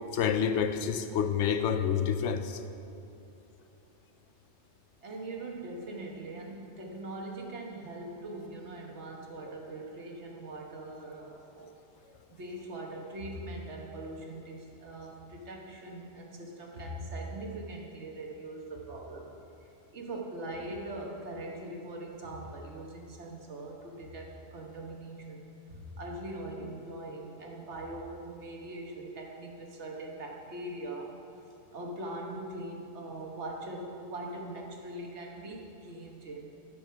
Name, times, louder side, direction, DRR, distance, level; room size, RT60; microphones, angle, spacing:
voice 1, 0.1-2.6, left 7 dB, 90° left, 9 dB, 1.0 m, -28 dB
voice 2, 5.0-11.7 12.3-19.3 19.6-31.2 31.7-36.4, right 1 dB, 80° right, 0 dB, 1.6 m, -41 dB
12.5 x 6.3 x 5.6 m, 2.9 s
omnidirectional pair, 1.2 m